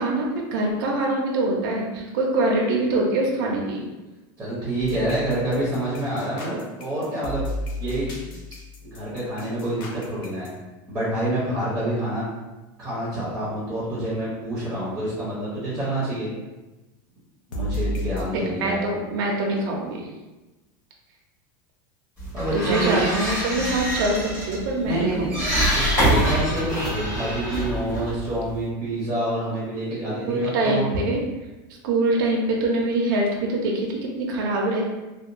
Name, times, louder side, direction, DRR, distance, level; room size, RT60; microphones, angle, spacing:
voice 1, 0.0-3.8 18.5-20.0 22.5-25.3 30.3-31.2 31.8-34.9, right 2 dB, 65° right, -1 dB, 0.5 m, -24 dB
voice 2, 4.4-7.5 7.8-8.1 8.8-10.5 10.9-12.2 12.8-16.3 17.5-18.8 22.3-23.0 24.8-25.3 25.7-30.9, right 1 dB, 10° right, -8 dB, 0.6 m, -27 dB
sound 1, 4.8-10.5 17.5-18.2, left 1 dB, 70° left, 0.6 m, -32 dB
sound 2, 22.2-28.7, right 1 dB, 25° left, 1.2 m, -25 dB
2.8 x 2.1 x 2.5 m, 1.1 s
supercardioid pair, 170°, 12 cm